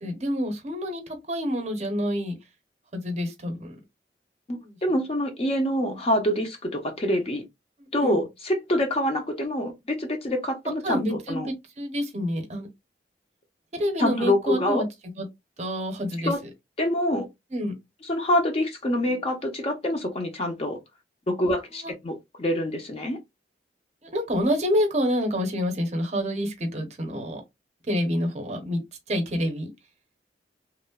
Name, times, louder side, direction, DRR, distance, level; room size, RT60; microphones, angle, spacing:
voice 1, 0.0-2.3 2.9-3.8 4.6-4.8 7.8-8.2 10.8-12.7 13.7-14.9 15.2-15.3 15.6-16.5 17.5-17.7 21.8-21.9 24.0-27.4 27.9-28.8 29.1-29.7, equal, 40° right, 0.7 m, -28 dB
voice 2, 4.5-7.4 7.9-11.5 14.0-14.8 16.2-16.4 16.8-17.3 18.0-20.8 21.3-23.2, left 1 dB, 35° left, 0.6 m, -26 dB
3.0 x 2.0 x 2.2 m
head